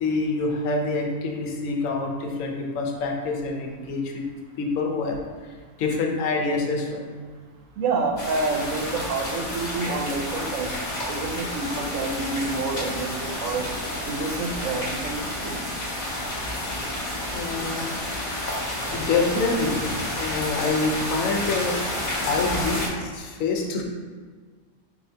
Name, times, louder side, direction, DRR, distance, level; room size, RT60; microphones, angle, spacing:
voice 1, 0.0-4.3 4.6-5.2 5.8-7.1 17.3-17.9 18.9-19.8 20.2-23.8, left 3 dB, 90° left, 1 dB, 1.0 m, -26 dB
voice 2, 7.8-10.7 11.1-13.7 14.0-15.6, right 3 dB, 80° right, 3 dB, 1.0 m, -28 dB
sound 1, 8.2-22.9, left 1 dB, 40° left, 0.8 m, -30 dB
4.5 x 2.7 x 3.3 m, 1.5 s
omnidirectional pair, 1.3 m